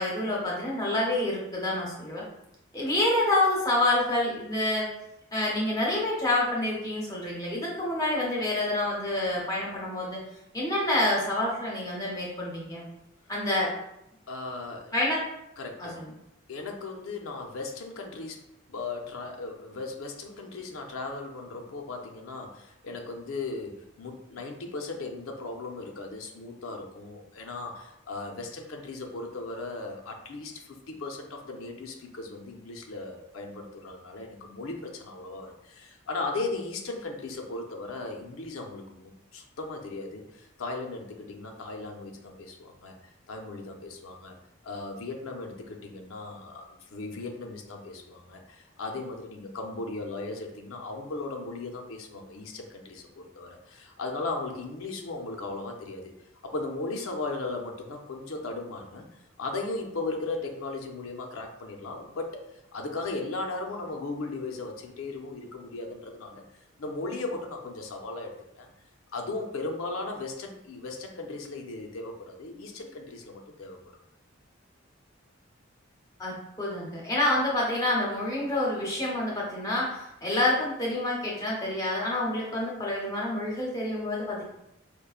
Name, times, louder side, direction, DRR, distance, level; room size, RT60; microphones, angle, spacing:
voice 1, 0.0-2.2 2.7-4.9 5.3-10.2 10.5-12.8 13.3-13.7 14.9-15.2 15.8-16.1 76.2-84.4, left 1 dB, 15° left, -3 dB, 0.8 m, -28 dB
voice 2, 14.3-14.9 15.6-16.0 16.5-18.4 18.7-43.0 43.3-44.4 44.6-56.1 56.4-59.1 59.4-68.7 69.1-73.8, left 3 dB, 90° left, 3 dB, 0.6 m, -37 dB
5.1 x 2.2 x 2.4 m, 0.84 s
head